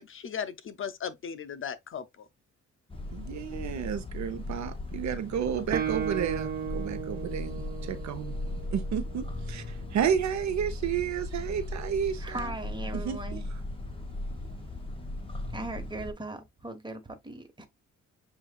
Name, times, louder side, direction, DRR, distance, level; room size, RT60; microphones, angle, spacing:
voice 1, 0.0-2.3, left 7 dB, 45° left, 0.6 m, -37 dB
sound 1, 2.9-16.1, left 2 dB, 20° left, 1.4 m, -38 dB
voice 2, 3.1-8.4 8.7-9.6 9.9-12.5 12.9-13.4, right 8 dB, 65° right, 0.9 m, -31 dB
Guitar, 5.7-9.4, right 8 dB, 30° right, 0.7 m, -35 dB
voice 3, 12.1-13.7 14.2-14.3 15.5-17.7, right 2 dB, 15° right, 1.4 m, -39 dB
7.2 x 2.6 x 2.4 m
cardioid pair, 90°, 30 cm